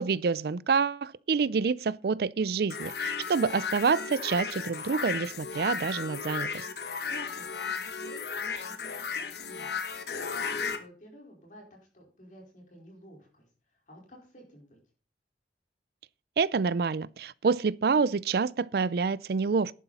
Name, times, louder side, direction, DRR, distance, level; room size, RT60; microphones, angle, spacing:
voice 1, 0.0-6.5 16.4-19.7, right 5 dB, 60° right, 0.4 m, -27 dB
sound 1, 2.7-10.8, left 5 dB, 65° left, 1.2 m, -35 dB
voice 2, 7.1-10.0 10.3-14.8, equal, 45° left, 4.6 m, -51 dB
11.0 x 9.5 x 4.2 m
head